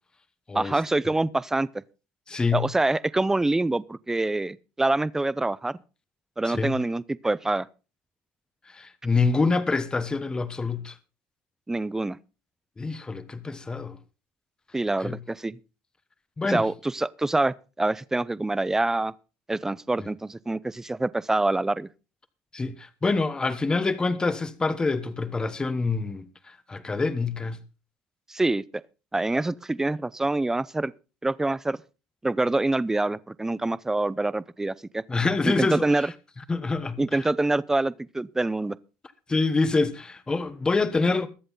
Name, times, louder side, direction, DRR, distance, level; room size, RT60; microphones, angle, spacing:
voice 1, 0.5-1.7 2.5-5.8 6.4-7.7 11.7-12.2 14.7-15.6 16.5-19.1 19.5-21.9 28.3-28.6 29.1-30.9 31.2-31.8 32.2-35.0 35.4-36.1 37.0-38.8, right 2 dB, 10° right, 0.5 m, -25 dB
voice 2, 2.3-2.7 6.5-6.8 8.7-10.9 12.8-14.0 15.0-15.2 16.4-16.6 20.0-20.1 22.5-27.6 35.1-35.9 36.5-37.2 39.3-41.3, left 3 dB, 15° left, 1.1 m, -26 dB
21.5 x 7.8 x 3.9 m
cardioid pair, 120°, 5 cm